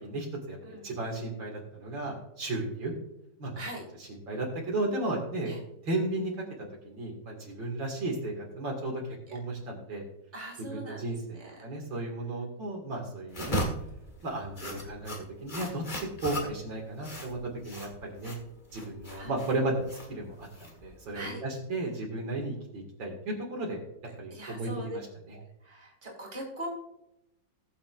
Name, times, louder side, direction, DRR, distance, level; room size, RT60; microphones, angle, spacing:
voice 1, 0.0-2.9 3.4-3.6 4.0-5.5 5.8-6.3 6.8-9.0 9.3-10.0 10.6-13.6 14.2-15.1 15.4-17.4 17.6-18.4 18.7-20.5 20.8-23.8 24.2-25.4, right 2 dB, 70° right, -1 dB, 2.8 m, -34 dB
voice 2, 10.3-11.1 19.1-19.3 21.1-21.4 24.3-25.0 25.6-26.7, right 1 dB, 25° right, -2 dB, 2.7 m, -40 dB
sound 1, 13.3-21.2, equal, 25° left, 1.5 m, -37 dB
19.5 x 7.0 x 2.5 m, 0.86 s
omnidirectional pair, 2.1 m